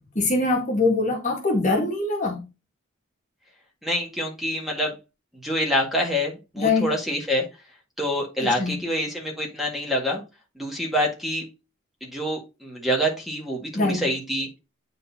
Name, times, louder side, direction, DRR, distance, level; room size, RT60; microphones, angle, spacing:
voice 1, 0.2-2.4 6.6-6.9 8.4-8.8 13.7-14.1, left 3 dB, 35° left, 1.8 m, -23 dB
voice 2, 3.8-5.0 5.4-7.5 8.0-10.2 10.6-11.4 12.0-14.6, equal, ahead, 1.8 m, -26 dB
9.4 x 4.0 x 2.8 m
head